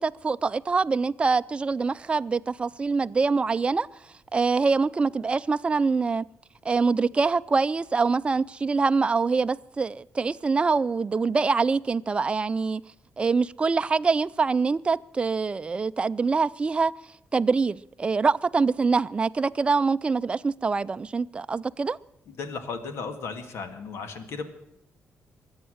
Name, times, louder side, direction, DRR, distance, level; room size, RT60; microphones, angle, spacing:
voice 1, 0.0-3.9 4.3-6.2 6.6-12.8 13.2-16.9 17.3-22.0, right 4 dB, 25° right, 0.5 m, -24 dB
voice 2, 22.3-24.5, left 4 dB, 75° left, 2.0 m, -35 dB
23.0 x 8.9 x 6.4 m
cardioid pair, 125°, 5 cm